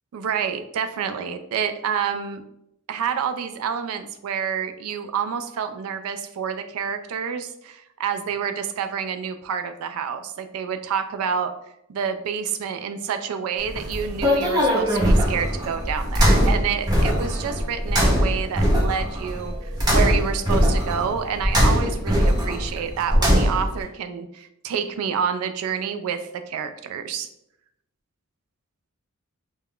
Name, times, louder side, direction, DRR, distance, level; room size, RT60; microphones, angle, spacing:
voice 1, 0.1-2.4 2.9-11.5 11.9-27.3, right 7 dB, 80° right, 9 dB, 0.3 m, -28 dB
sound 1, 13.6-23.8, equal, 20° right, 0.6 m, -21 dB
2.3 x 2.1 x 3.5 m, 0.81 s
head